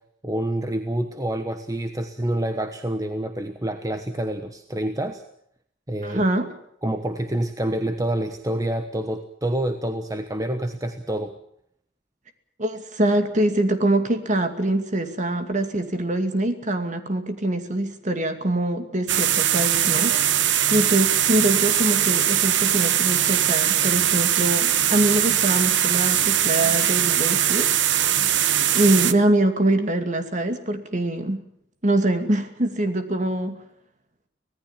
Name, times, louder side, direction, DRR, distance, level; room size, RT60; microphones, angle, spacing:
voice 1, 0.2-5.2 5.9-6.2 6.8-11.3, right 1 dB, 20° right, 7 dB, 1.2 m, -27 dB
voice 2, 6.0-6.5 12.6-28.1 28.7-31.4 31.8-33.6, right 1 dB, 40° right, 7 dB, 2.5 m, -24 dB
sound 1, 19.1-29.1, right 11 dB, 65° right, 1.1 m, -21 dB
25.0 x 18.5 x 7.3 m, 0.72 s
head